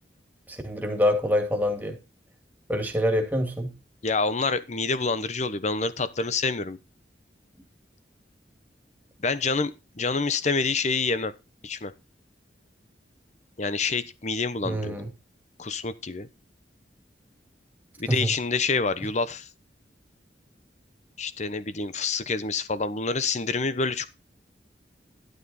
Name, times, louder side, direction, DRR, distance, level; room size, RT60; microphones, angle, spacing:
voice 1, 0.5-2.0 2.7-3.7 14.6-15.1 18.1-18.3, equal, 10° right, 2.3 m, -25 dB
voice 2, 4.0-6.8 9.2-11.3 11.6-11.9 13.6-15.0 15.6-16.3 18.0-19.5 21.2-24.1, left 4 dB, 40° left, 0.9 m, -27 dB
12.0 x 8.2 x 4.1 m
head